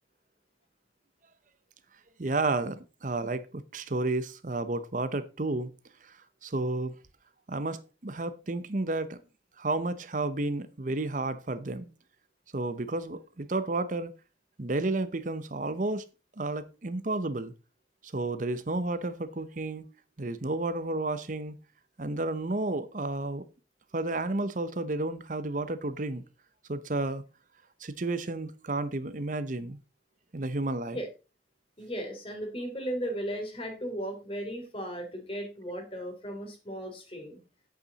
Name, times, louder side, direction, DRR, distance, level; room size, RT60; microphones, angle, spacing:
voice 1, 2.2-5.7 6.0-6.1 6.4-6.9 7.5-9.2 9.6-11.9 12.5-14.1 14.6-16.0 16.4-17.5 18.0-19.9 20.2-21.5 22.0-23.5 23.9-26.2 26.7-27.2 27.8-29.8 30.3-31.0, right 2 dB, 45° right, 0.8 m, -31 dB
voice 2, 31.8-37.4, equal, 30° left, 3.1 m, -36 dB
10.5 x 8.4 x 4.0 m
head